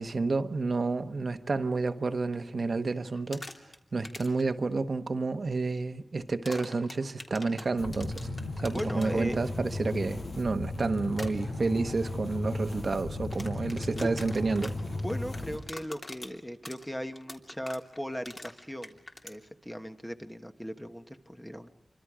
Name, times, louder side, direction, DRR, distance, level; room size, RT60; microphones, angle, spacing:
voice 1, 0.0-3.4 3.9-8.3 8.6-14.7, right 3 dB, 55° right, 1.1 m, -30 dB
sound 1, 3.1-3.8 4.0-4.4 6.4-9.1 11.1-11.3 13.2-19.4, left 2 dB, 40° left, 3.1 m, -43 dB
sound 2, 7.8-15.6, left 2 dB, 80° left, 6.4 m, -35 dB
voice 2, 8.7-9.5 13.9-14.1 14.9-19.0 19.2-21.7, equal, 5° left, 1.2 m, -38 dB
27.5 x 24.5 x 5.0 m
wide cardioid pair, 110°, 0 cm